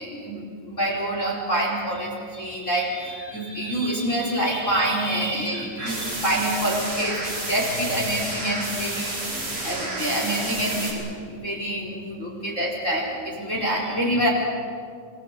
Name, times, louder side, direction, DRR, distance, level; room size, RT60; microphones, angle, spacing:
voice 1, 0.0-14.3, right 1 dB, 15° left, -1 dB, 4.7 m, -26 dB
sound 1, 5.8-10.9, right 2 dB, 35° right, 6.2 m, -31 dB
25.5 x 25.0 x 8.3 m, 2.3 s
omnidirectional pair, 5.1 m